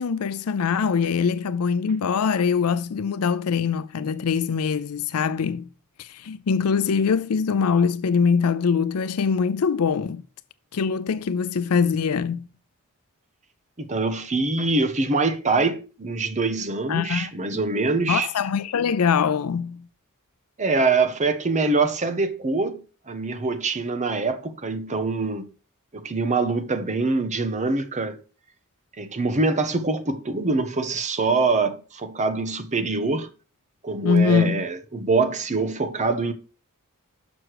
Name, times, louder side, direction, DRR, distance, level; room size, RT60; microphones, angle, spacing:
voice 1, 0.0-5.7 6.0-10.2 10.7-12.5 16.9-17.3 18.1-19.8 34.0-34.6, left 6 dB, 70° left, 0.5 m, -23 dB
voice 2, 13.8-18.3 20.6-25.4 25.9-28.2 29.0-33.3 33.8-36.3, right 3 dB, 30° right, 0.9 m, -24 dB
6.2 x 6.2 x 4.7 m
head